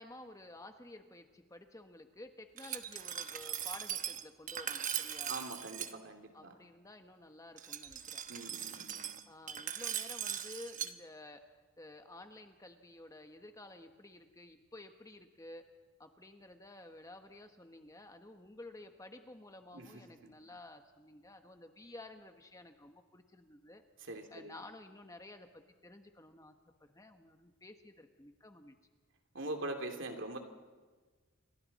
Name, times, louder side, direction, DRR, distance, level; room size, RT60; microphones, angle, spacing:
voice 1, 0.0-5.3 6.3-8.2 9.3-11.4 11.8-15.7 16.0-23.8 24.3-26.5 26.8-28.8, left 2 dB, 15° left, 6 dB, 1.2 m, -52 dB
Glass, 2.6-5.9 7.6-10.9, right 9 dB, 40° right, 1.0 m, -40 dB
voice 2, 5.3-6.5 8.3-9.1 19.7-20.3 24.0-24.6 29.3-30.4, right 2 dB, 65° right, 4 dB, 2.8 m, -43 dB
29.0 x 24.5 x 4.2 m, 1.4 s
head